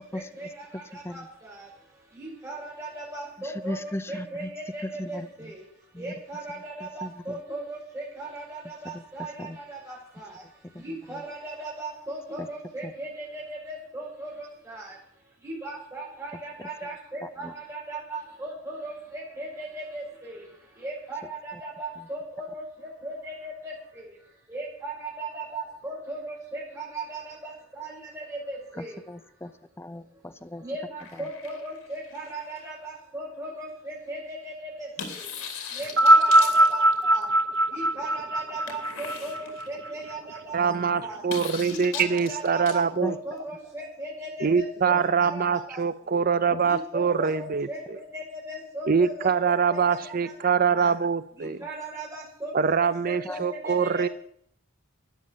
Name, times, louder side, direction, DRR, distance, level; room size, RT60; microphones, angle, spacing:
voice 1, 0.0-5.7 6.0-15.0 15.4-20.4 20.7-22.6 23.0-24.2 24.5-24.9 25.2-29.0 30.1-30.2 30.6-35.3 35.7-37.3 37.7-41.3 41.7-46.2 46.6-50.9 51.3-54.1, right 2 dB, 15° right, -4 dB, 5.8 m, -38 dB
voice 2, 3.4-4.5 4.8-5.5 5.9-6.1 6.8-7.4 8.8-9.0 9.4-9.6 10.7-10.8 11.1-11.2 12.4-12.5 12.8-12.9 17.4-17.5 28.8-29.5 29.8-30.6 31.1-31.3 43.0-43.1 44.9-45.0 46.5-46.6 53.2-53.5, left 1 dB, 10° left, 9 dB, 0.7 m, -37 dB
sound 1, 31.0-32.7 35.0-37.2 38.7-39.8 41.3-42.7, left 6 dB, 85° left, 2.8 m, -39 dB
sound 2, 35.8-40.4 41.3-41.4, right 1 dB, 60° right, 0.9 m, -21 dB
voice 3, 40.5-43.2 44.4-48.0 48.9-51.6 52.5-54.1, right 6 dB, 45° right, 15 dB, 0.6 m, -24 dB
13.0 x 9.7 x 7.4 m, 0.66 s
head